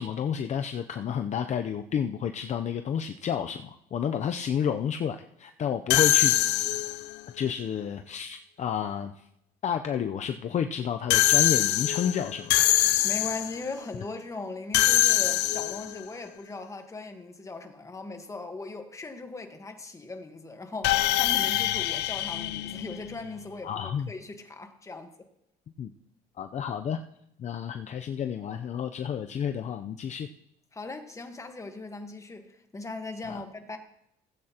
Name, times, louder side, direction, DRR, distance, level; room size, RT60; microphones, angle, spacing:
voice 1, 0.0-6.4 7.3-9.1 9.6-12.5 23.6-24.1 25.8-25.9 26.4-27.0 27.4-30.3 33.3-33.4, left 8 dB, 45° left, 0.6 m, -30 dB
sound 1, 5.9-7.2 11.1-13.6 14.7-16.0 20.8-23.4, left 15 dB, 85° left, 0.6 m, -24 dB
voice 2, 13.0-25.3 30.7-33.8, left 3 dB, 20° left, 1.3 m, -39 dB
17.5 x 8.6 x 2.9 m
cardioid pair, 110°, 17 cm